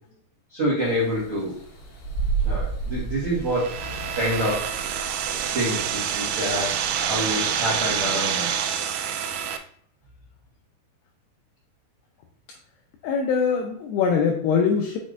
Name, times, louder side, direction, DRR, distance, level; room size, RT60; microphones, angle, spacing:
voice 1, 0.5-1.6 2.4-4.7 5.5-8.6, equal, 70° right, -8 dB, 1.3 m, -27 dB
sound 1, 0.8-8.0, right 4 dB, 70° left, 1.9 m, -33 dB
sound 2, 3.5-9.6, right 8 dB, 90° right, 3.0 m, -27 dB
voice 2, 13.0-15.0, left 6 dB, 85° left, 2 dB, 2.3 m, -22 dB
6.3 x 5.9 x 2.5 m, 0.63 s
omnidirectional pair, 5.4 m